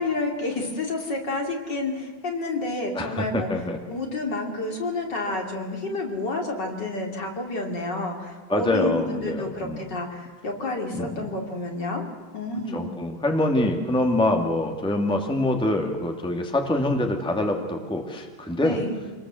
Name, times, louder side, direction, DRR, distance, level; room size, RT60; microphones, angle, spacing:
voice 1, 0.0-3.5 3.9-12.1 12.3-13.0 18.6-19.0, left 2 dB, 50° left, 2 dB, 3.5 m, -29 dB
voice 2, 2.9-3.8 8.5-9.8 10.9-11.3 12.7-18.8, left 1 dB, ahead, 3 dB, 2.0 m, -25 dB
26.5 x 20.0 x 7.7 m, 1.4 s
omnidirectional pair, 2.4 m